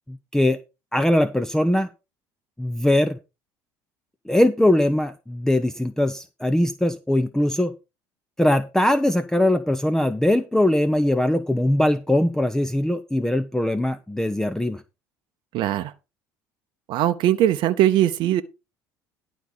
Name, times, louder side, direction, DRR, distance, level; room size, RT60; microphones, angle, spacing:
voice 1, 0.1-0.6 0.9-1.9 2.6-3.2 4.3-7.7 8.4-14.8, left 1 dB, 5° left, 0.8 m, -21 dB
voice 2, 15.5-15.9 16.9-18.4, right 12 dB, 60° right, 0.8 m, -20 dB
11.5 x 4.1 x 6.7 m
hypercardioid pair, 70°, 9 cm